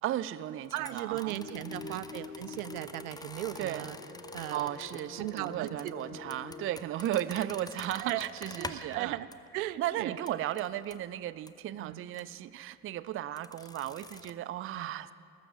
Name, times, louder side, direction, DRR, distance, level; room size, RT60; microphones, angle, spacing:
voice 1, 0.0-1.4 1.8-2.0 3.6-3.9 4.5-9.2 9.8-15.1, right 12 dB, 30° right, 17 dB, 0.5 m, -35 dB
sound 1, 0.6-9.0 9.3-9.5 9.8-9.9 10.3-11.0 11.5-11.6 12.1-12.3 13.4-14.3, left 3 dB, 10° left, 0.7 m, -47 dB
voice 2, 0.7-4.0 4.3-4.7 5.2-5.9 7.4-7.5 7.9-8.3 8.6-9.3 9.5-10.2 11.8-12.0 14.7-14.9, right 16 dB, 70° right, 17 dB, 0.6 m, -37 dB
sound 2, 1.4-6.7, left 3 dB, 85° left, 1.8 m, -46 dB
20.0 x 12.0 x 4.9 m, 2.4 s
figure-of-eight pair, 60°, 45 cm